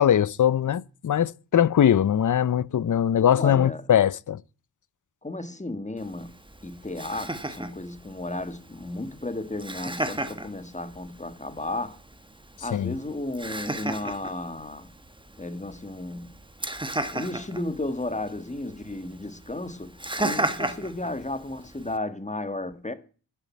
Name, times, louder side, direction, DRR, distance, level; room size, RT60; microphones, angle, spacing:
voice 1, 0.0-4.4 12.7-13.0, left 9 dB, 45° left, 0.5 m, -21 dB
voice 2, 3.3-3.8 5.2-6.3 6.6-12.0 12.6-14.9 15.4-16.3 17.1-22.9, left 2 dB, 15° left, 1.4 m, -34 dB
Laughter, 6.0-22.0, right 1 dB, 10° right, 1.2 m, -35 dB
11.0 x 7.2 x 8.4 m
wide cardioid pair, 80°, 46 cm